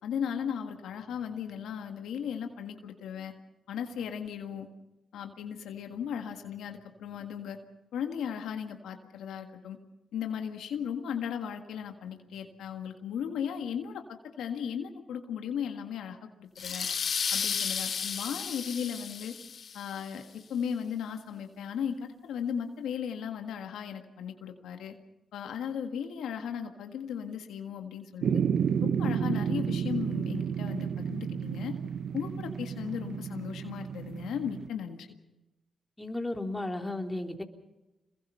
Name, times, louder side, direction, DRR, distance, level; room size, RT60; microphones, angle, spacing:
voice 1, 0.0-3.3 3.7-4.7 5.1-7.6 7.9-9.8 10.1-16.9 17.3-19.4 19.7-24.9 25.3-28.4 28.8-31.7 32.1-35.1, left 8 dB, 85° left, 5 dB, 1.7 m, -36 dB
sound 1, 16.6-20.0, left 7 dB, 65° left, 0.7 m, -33 dB
sound 2, 28.2-34.7, right 7 dB, 70° right, 1.0 m, -31 dB
voice 2, 36.0-37.4, left 2 dB, 15° left, 3 dB, 3.3 m, -34 dB
26.5 x 22.0 x 5.6 m, 1.0 s
supercardioid pair, 50°, 0 cm